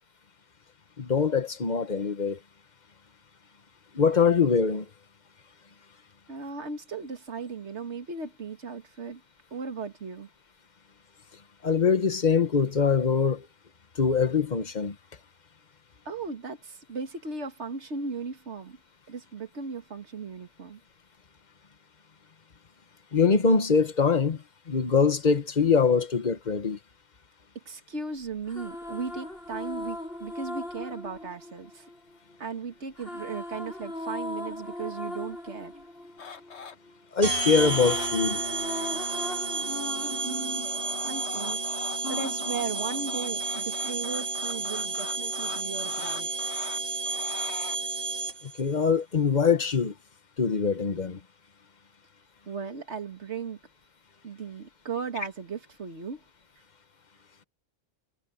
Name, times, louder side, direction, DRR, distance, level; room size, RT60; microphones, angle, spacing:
voice 1, 1.0-2.4 3.9-4.8 11.6-13.4 14.0-14.9 23.1-24.4 24.7-26.8 37.1-38.4 48.6-49.9 50.4-51.2, left 5 dB, 40° left, 1.3 m, -23 dB
voice 2, 6.3-9.2 9.5-10.3 16.1-18.8 19.1-20.8 27.7-31.9 32.4-35.7 40.2-40.7 41.0-41.6 42.1-46.3 52.5-53.6 54.2-56.2, right 5 dB, 80° right, 2.2 m, -36 dB
sound 1, 28.3-32.4 33.0-37.0 37.3-41.5 42.0-43.5, left 1 dB, 60° left, 7.9 m, -39 dB
sound 2, 36.2-36.8 37.2-38.1 38.4-39.4 40.4-47.8 49.5-49.6, left 6 dB, 75° left, 1.5 m, -42 dB
sound 3, 37.2-48.6, right 3 dB, 55° right, 2.3 m, -31 dB
omnidirectional pair, 1.1 m